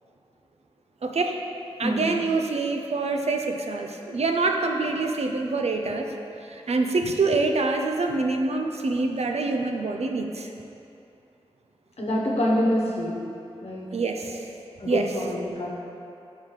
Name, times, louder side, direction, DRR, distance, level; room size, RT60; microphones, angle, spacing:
voice 1, 1.0-1.4 1.8-6.1 6.4-10.5 13.9-14.5 14.8-15.1, right 3 dB, 75° right, 4 dB, 0.5 m, -26 dB
voice 2, 12.0-13.2 13.6-13.9 14.8-15.7, equal, 70° left, -3 dB, 1.1 m, -26 dB
5.4 x 4.1 x 4.7 m, 2.7 s
cardioid pair, 45°, 11 cm